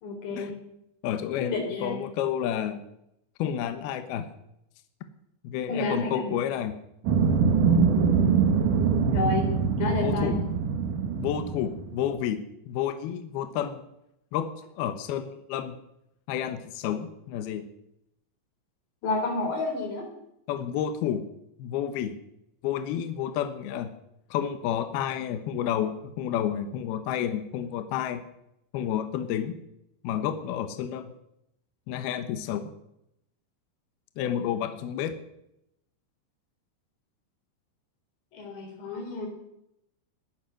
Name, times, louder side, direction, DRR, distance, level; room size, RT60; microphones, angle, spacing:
voice 1, 0.0-0.6 1.4-2.0 5.7-6.4 9.1-10.4 19.0-20.1 38.3-39.3, left 2 dB, 60° left, 3 dB, 5.9 m, -30 dB
voice 2, 1.0-2.8 3.4-4.3 5.4-6.7 10.0-10.5 11.2-13.8 14.3-14.5 14.8-15.8 16.3-17.6 20.5-21.2 21.6-22.2 22.6-23.9 24.3-28.2 28.7-29.6 30.0-31.1 31.9-32.7 34.2-35.2, left 9 dB, 75° left, 9 dB, 2.3 m, -30 dB
sound 1, 7.0-12.1, right 5 dB, 75° right, 1.9 m, -24 dB
21.0 x 10.0 x 6.4 m, 0.81 s
omnidirectional pair, 5.8 m